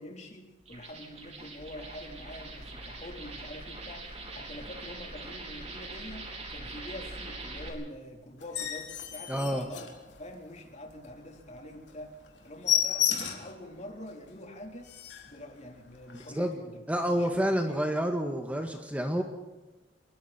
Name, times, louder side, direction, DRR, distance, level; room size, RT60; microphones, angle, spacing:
voice 1, 0.0-9.9 10.2-12.2 12.4-14.9 15.2-16.7 17.0-18.1, left 1 dB, 40° left, 2 dB, 4.2 m, -45 dB
sound 1, 0.6-7.7, right 2 dB, 35° right, 4.6 m, -43 dB
sound 2, 8.4-10.5 11.0-11.1 11.5-11.6 11.9-12.0 12.3-13.6 14.1-14.2 14.5-14.6 14.8-15.4 16.1-16.3, left 10 dB, 70° left, 3.6 m, -31 dB
voice 2, 9.3-9.6 16.1-16.6 16.9-19.2, equal, 10° right, 4 dB, 1.8 m, -29 dB
27.0 x 22.5 x 4.5 m, 1.1 s
head